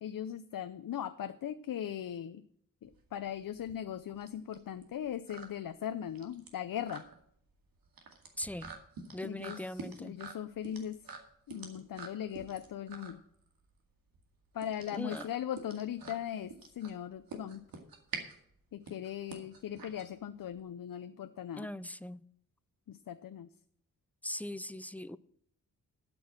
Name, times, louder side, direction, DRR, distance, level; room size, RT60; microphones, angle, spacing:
voice 1, 0.0-2.4 2.8-7.0 9.2-11.1 11.5-13.2 14.5-17.6 18.7-21.7 22.9-23.5, left 10 dB, 70° left, 10 dB, 0.6 m, -39 dB
sound 1, 2.8-20.6, right 4 dB, 90° right, 2.2 m, -48 dB
voice 2, 8.4-8.7 9.1-10.2 14.9-15.3 21.6-22.2 24.2-25.2, left 1 dB, 5° left, 16 dB, 0.4 m, -40 dB
12.5 x 6.2 x 7.3 m, 0.68 s
wide cardioid pair, 110°, 34 cm